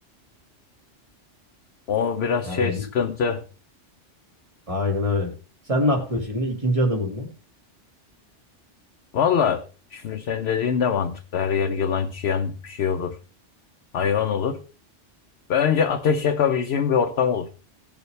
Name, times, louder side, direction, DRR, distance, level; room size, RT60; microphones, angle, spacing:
voice 1, 1.9-3.4 9.1-9.6 9.9-13.2 13.9-14.6 15.5-17.5, left 7 dB, 65° left, 4 dB, 1.0 m, -23 dB
voice 2, 2.4-2.8 4.7-5.3 5.7-7.3, left 1 dB, 30° right, 2 dB, 2.2 m, -24 dB
17.5 x 6.8 x 3.3 m, 0.36 s
omnidirectional pair, 1.2 m